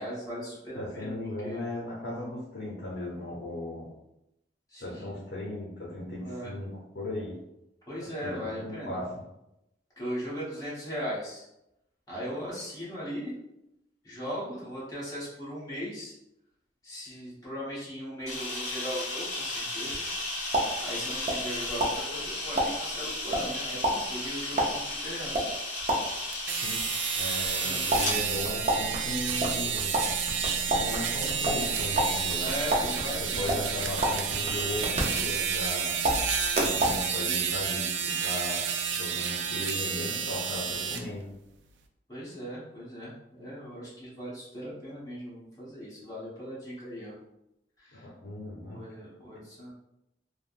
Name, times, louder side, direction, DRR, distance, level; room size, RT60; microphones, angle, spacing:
voice 1, 0.0-1.1 1.4-1.6 4.7-5.1 6.2-6.5 7.9-9.0 10.0-11.5 12.1-13.3 14.0-16.1 16.8-20.1 20.8-25.5 27.6-27.8 32.4-33.5 42.1-47.1 47.8-48.1 48.7-49.7, equal, 20° left, -9 dB, 1.2 m, -38 dB
voice 2, 0.7-3.9 4.8-7.3 8.0-9.2 26.6-26.8 27.2-30.0 30.7-32.5 33.4-36.0 36.5-41.3 47.9-48.8, left 1 dB, 65° left, -6 dB, 0.7 m, -37 dB
Camera, 18.3-28.2, left 2 dB, 45° left, 1.0 m, -34 dB
sound 1, 20.1-21.6 21.8-26.4 27.9-35.7 36.0-37.0, right 1 dB, 35° right, 0.5 m, -30 dB
sound 2, 26.3-41.0, right 7 dB, 90° right, 0.3 m, -30 dB
3.4 x 2.1 x 2.5 m, 0.86 s
head